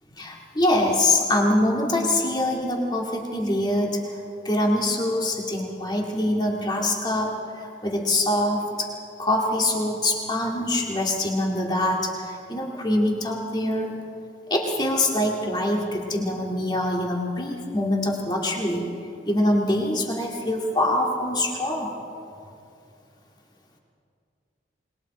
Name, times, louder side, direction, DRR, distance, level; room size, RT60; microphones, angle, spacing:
voice 1, 0.1-4.2 4.4-8.9 9.2-14.0 14.5-18.9 19.2-21.9, left 1 dB, 25° left, 0 dB, 2.5 m, -24 dB
28.0 x 21.5 x 4.4 m, 2.5 s
head